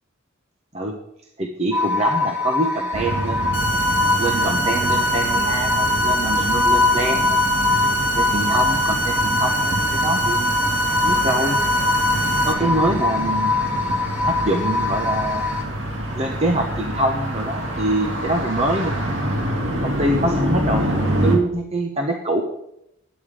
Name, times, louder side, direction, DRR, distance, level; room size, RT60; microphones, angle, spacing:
voice 1, 1.4-3.6 4.2-7.6 8.1-10.6 11.0-11.6 12.4-13.5 14.2-15.4 16.1-19.4 19.8-22.4, right 1 dB, 30° right, 2 dB, 0.8 m, -25 dB
sound 1, 1.7-15.6, left 3 dB, 10° right, 1.4 m, -23 dB
sound 2, 2.9-21.4, equal, 60° right, 2.2 m, -27 dB
sound 3, 3.5-12.5, right 2 dB, 60° left, 1.3 m, -24 dB
9.4 x 9.1 x 5.0 m, 0.80 s
head